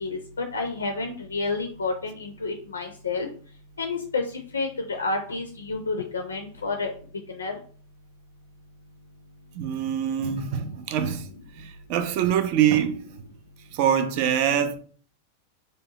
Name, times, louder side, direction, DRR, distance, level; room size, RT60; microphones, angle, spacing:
voice 1, 0.0-3.3 3.8-4.2 4.5-6.9 7.3-7.6, left 3 dB, 75° left, 0.4 m, -29 dB
voice 2, 9.5-11.3 11.6-13.0 13.7-14.7, right 9 dB, 45° right, 0.4 m, -24 dB
2.7 x 2.2 x 2.8 m
figure-of-eight pair, 90°, 0 cm